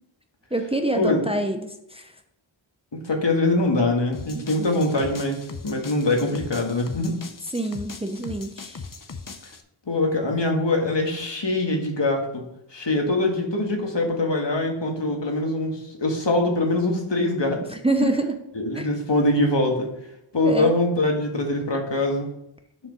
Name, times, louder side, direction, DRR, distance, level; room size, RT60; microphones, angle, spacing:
voice 1, 0.5-2.1 4.3-4.8 7.5-8.8 17.7-18.4 18.7-18.9 20.4-20.7, right 2 dB, 10° right, 5 dB, 0.7 m, -26 dB
voice 2, 2.9-7.2 9.9-12.4 12.7-17.6 18.0-18.1 18.5-19.9 20.3-22.3, left 2 dB, 60° left, 2 dB, 1.7 m, -23 dB
sound 1, 4.1-9.6, left 4 dB, 40° left, 0.8 m, -39 dB
6.2 x 5.0 x 6.5 m, 0.81 s
wide cardioid pair, 60°, 49 cm